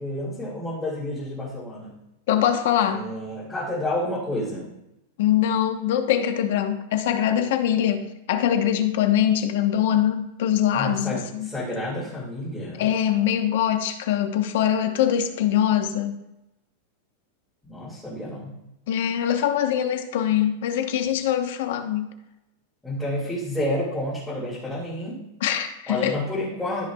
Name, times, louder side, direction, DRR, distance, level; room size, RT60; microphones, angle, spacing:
voice 1, 0.0-1.9 2.9-4.7 10.7-12.9 17.6-18.5 22.8-25.2 25.9-26.8, left 1 dB, 5° left, -9 dB, 2.3 m, -30 dB
voice 2, 2.3-3.1 5.2-11.5 12.8-16.1 18.9-22.1 25.4-26.1, left 10 dB, 60° left, 7 dB, 1.0 m, -23 dB
13.5 x 5.9 x 2.3 m, 0.91 s
supercardioid pair, 160°, 0 cm